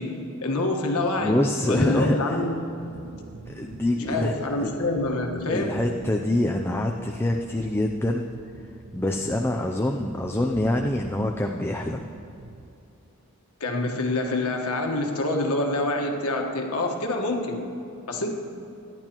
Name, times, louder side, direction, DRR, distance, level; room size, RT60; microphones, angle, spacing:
voice 1, 0.0-2.8 3.9-5.9 13.6-17.7 18.1-18.3, left 2 dB, 85° left, 2 dB, 1.4 m, -27 dB
voice 2, 1.2-2.5 3.5-4.7 5.5-8.3 8.9-12.1, left 1 dB, 10° left, 2 dB, 0.4 m, -25 dB
sound 1, 2.7-12.7, right 3 dB, 65° right, 0.6 m, -44 dB
24.5 x 11.0 x 3.0 m, 2.9 s
head